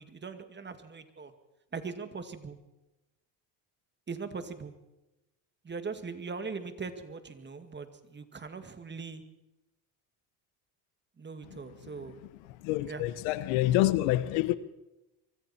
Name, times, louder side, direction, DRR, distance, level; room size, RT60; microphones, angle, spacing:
voice 1, 0.0-1.3 1.7-2.6 4.1-4.7 5.6-9.2 11.2-12.2 12.9-13.0, right 4 dB, 20° right, 2.1 m, -40 dB
voice 2, 12.6-14.6, left 15 dB, 80° left, 1.3 m, -27 dB
25.0 x 23.5 x 4.4 m
cardioid pair, 115°, 47 cm